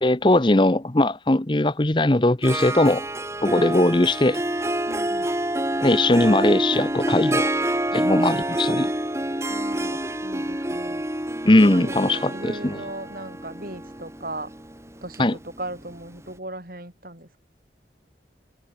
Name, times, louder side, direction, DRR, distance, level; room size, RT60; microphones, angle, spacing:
voice 1, 0.0-3.1 3.4-4.4 5.8-7.5 7.9-8.9 11.4-12.8 15.2-15.3, left 1 dB, 25° left, 0.9 m, -19 dB
Harp, 2.4-16.0, right 1 dB, 15° right, 2.1 m, -27 dB
voice 2, 4.9-5.4 9.5-11.1 11.7-14.5 15.0-17.4, right 1 dB, 50° right, 7.9 m, -37 dB
head